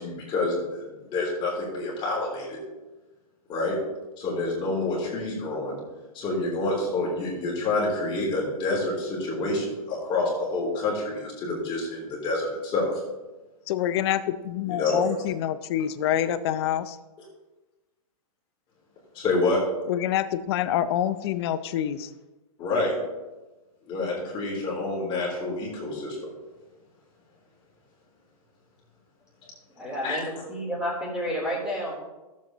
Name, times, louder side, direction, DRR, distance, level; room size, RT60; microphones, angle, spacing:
voice 1, 0.0-2.6 3.5-3.8 4.2-5.8 6.1-12.9 14.7-15.1 19.1-19.6 22.6-22.9 23.9-26.3 30.0-30.2, left 2 dB, 25° left, -4 dB, 3.4 m, -28 dB
voice 2, 13.7-17.0 19.9-22.1, left 11 dB, 45° left, 14 dB, 0.6 m, -26 dB
voice 3, 29.8-32.0, equal, 5° right, -5 dB, 3.6 m, -30 dB
14.0 x 7.4 x 3.0 m, 1.1 s
hypercardioid pair, 140°, 19 cm